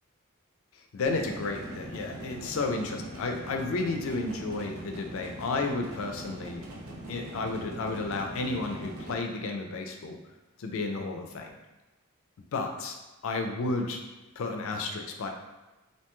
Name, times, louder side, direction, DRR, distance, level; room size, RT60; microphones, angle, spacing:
voice 1, 0.7-6.6 7.1-10.2 10.6-11.6 12.5-13.0 13.2-14.0 14.4-15.3, left 3 dB, 70° left, 4 dB, 0.4 m, -32 dB
sound 1, 1.1-9.1, right 1 dB, 90° right, 0.6 m, -42 dB
2.7 x 2.2 x 2.9 m, 1.1 s
head